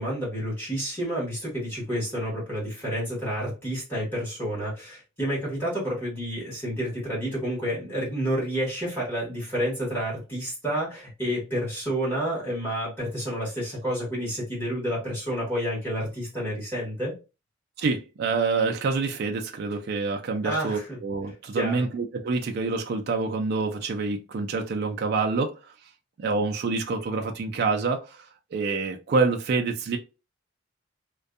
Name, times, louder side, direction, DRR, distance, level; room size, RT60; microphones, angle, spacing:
voice 1, 0.0-17.1 20.4-21.0 21.5-21.9, equal, 10° left, 1.3 m, -29 dB
voice 2, 17.8-25.6 26.2-30.0, right 4 dB, 55° right, 0.3 m, -27 dB
2.6 x 2.2 x 2.4 m
head